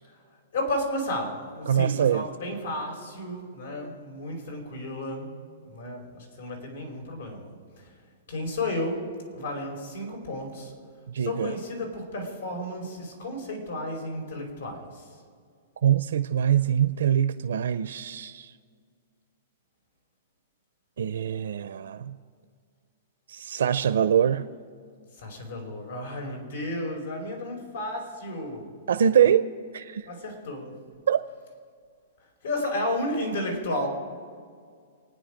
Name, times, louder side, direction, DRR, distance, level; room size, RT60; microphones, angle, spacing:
voice 1, 0.5-5.3 5.7-7.8 8.3-10.7 11.2-15.1 25.2-28.7 30.1-30.7 32.4-33.9, left 1 dB, 85° left, 4.9 m, -33 dB
voice 2, 1.7-2.3 11.1-11.5 15.8-18.5 21.0-22.2 23.3-24.5 28.9-29.5 29.7-30.1 31.1-31.2, right 9 dB, 85° right, 0.5 m, -23 dB
28.0 x 9.6 x 5.1 m
hypercardioid pair, 160°, 0 cm